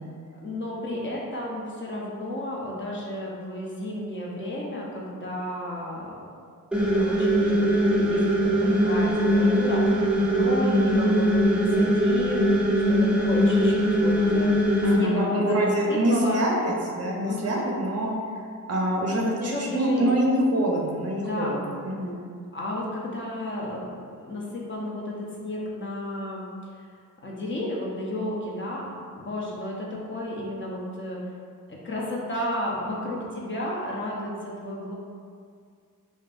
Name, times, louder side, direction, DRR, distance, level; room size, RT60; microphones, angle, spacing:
voice 1, 0.3-6.1 6.9-14.5 14.9-16.4 17.2-17.7 19.2-20.1 21.2-21.6 22.5-26.4 27.2-28.9 29.1-31.2 31.7-34.9, left 1 dB, 35° left, -3 dB, 0.7 m, -32 dB
sound 1, 6.7-15.0, equal, 5° right, 0.5 m, -21 dB
voice 2, 14.8-18.1 18.7-21.6 21.8-22.2, right 1 dB, 50° right, -2 dB, 0.7 m, -25 dB
5.1 x 2.1 x 2.5 m, 2.1 s
cardioid pair, 75°, 33 cm